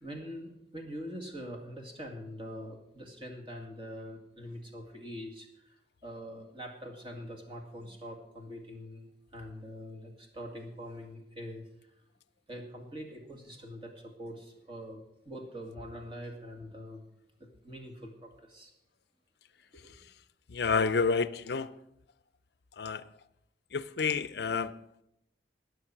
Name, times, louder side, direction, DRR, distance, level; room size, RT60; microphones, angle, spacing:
voice 1, 0.0-11.6 12.5-17.1 17.4-18.7 19.7-19.9, equal, 30° right, 2.2 m, -44 dB
voice 2, 20.5-21.8 22.8-23.1 23.7-25.0, left 5 dB, 65° left, 0.5 m, -30 dB
20.0 x 6.9 x 5.9 m
head